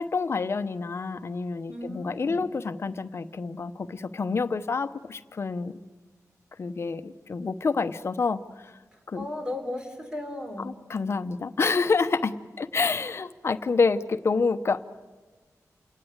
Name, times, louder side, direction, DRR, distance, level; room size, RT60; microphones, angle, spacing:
voice 1, 0.0-5.7 6.6-8.8 9.1-9.3 10.6-14.9, left 4 dB, 45° left, 10 dB, 1.0 m, -28 dB
voice 2, 1.7-2.5 9.2-10.7, left 1 dB, 15° right, 3 dB, 3.8 m, -35 dB
29.0 x 19.0 x 8.1 m, 1.3 s
wide cardioid pair, 175°, 6 cm